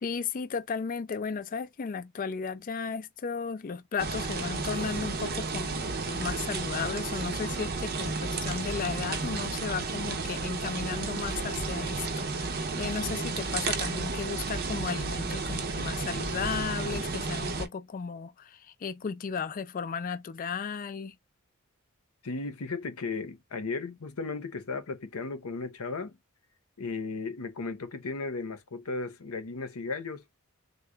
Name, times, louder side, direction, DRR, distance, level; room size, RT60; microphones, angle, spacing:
voice 1, 0.0-21.1, left 6 dB, 40° left, 0.4 m, -35 dB
sound 1, 4.0-17.7, right 3 dB, 45° right, 0.6 m, -32 dB
voice 2, 22.2-26.2 26.8-30.2, left 4 dB, 75° left, 0.8 m, -35 dB
3.7 x 2.2 x 3.3 m
head